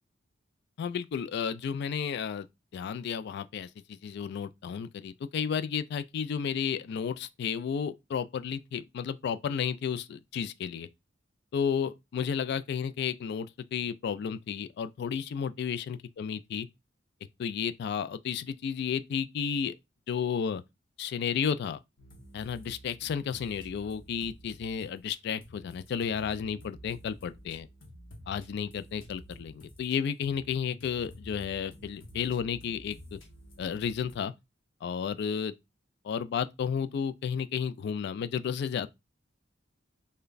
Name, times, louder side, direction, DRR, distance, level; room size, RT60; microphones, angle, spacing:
voice 1, 0.8-2.5 2.7-10.9 11.5-16.7 17.4-19.7 20.1-20.6 21.0-21.8 22.3-27.7 28.3-33.2 33.6-34.3 34.8-35.5 36.0-38.9, left 7 dB, 60° left, 0.3 m, -32 dB
sound 1, 22.0-34.2, equal, 80° left, 0.9 m, -51 dB
3.2 x 2.2 x 3.8 m
head